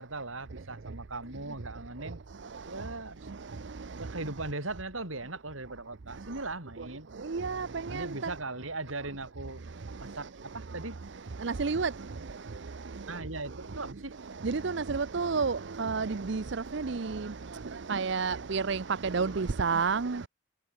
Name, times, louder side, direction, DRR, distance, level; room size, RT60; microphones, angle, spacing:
voice 1, 0.0-2.2 2.7-3.3 3.9-7.1 7.9-9.6 10.0-11.0 13.1-14.1, right 2 dB, 80° right, 6.7 m, -39 dB
voice 2, 7.3-7.7 7.9-8.0 11.4-11.9 14.4-14.6 14.9-16.4 16.7-17.0 17.9-18.8 19.1-20.3, right 5 dB, 60° right, 0.6 m, -29 dB
head